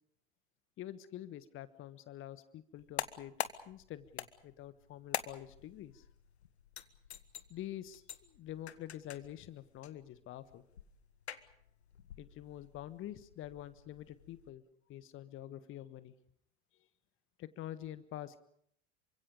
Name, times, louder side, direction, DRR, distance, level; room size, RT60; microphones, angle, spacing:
voice 1, 0.8-3.3 3.7-6.0 7.5-10.6 12.2-14.6 14.9-16.1 17.4-18.4, left 12 dB, 35° left, 14 dB, 1.3 m, -47 dB
sound 1, 2.8-14.5, left 9 dB, 75° left, 1.4 m, -47 dB
28.0 x 25.0 x 5.3 m, 0.68 s
figure-of-eight pair, 70°, 33 cm